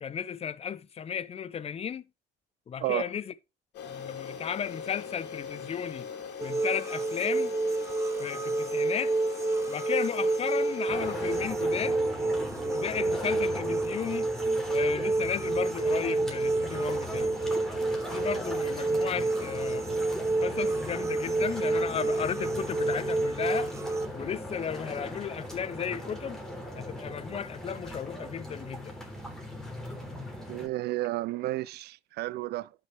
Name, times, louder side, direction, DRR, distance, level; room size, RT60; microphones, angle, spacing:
voice 1, 0.0-2.1 2.7-3.3 3.9-6.1 6.4-7.5 8.2-9.1 9.7-12.0 12.7-14.3 14.7-17.4 18.1-19.9 20.4-23.7 24.1-26.4 26.8-29.0, left 8 dB, 35° left, 0.6 m, -34 dB
sound 1, 3.7-11.4, left 6 dB, 75° left, 2.8 m, -40 dB
sound 2, 6.4-24.1, right 2 dB, 15° right, 0.6 m, -29 dB
sound 3, 10.9-30.7, equal, 5° left, 3.4 m, -39 dB
voice 2, 30.5-32.7, right 17 dB, 75° right, 0.5 m, -32 dB
11.5 x 6.1 x 3.3 m
cardioid pair, 110°, 17 cm